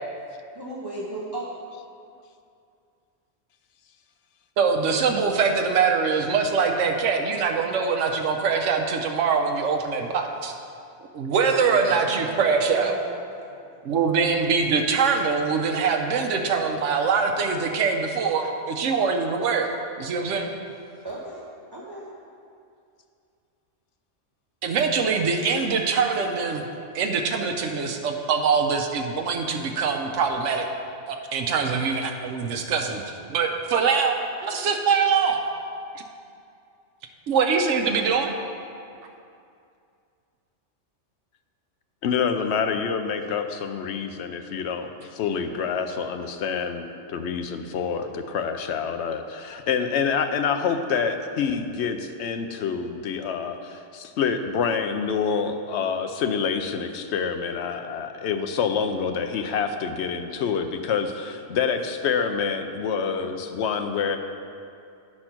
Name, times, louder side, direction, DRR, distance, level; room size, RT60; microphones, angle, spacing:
voice 1, 0.5-1.5 11.4-13.2 13.5-13.7 21.0-22.1, right 1 dB, 20° right, -5 dB, 0.8 m, -37 dB
voice 2, 4.6-10.5 11.1-13.0 13.8-19.7 20.0-20.6 24.6-26.7 26.9-30.7 31.1-33.0 33.3-34.1 34.4-35.4 37.3-38.3, right 5 dB, 80° right, 3 dB, 1.0 m, -23 dB
voice 3, 42.0-46.8 47.1-64.2, left 6 dB, 70° left, 7 dB, 0.8 m, -27 dB
9.9 x 4.3 x 5.9 m, 2.5 s
omnidirectional pair, 1.3 m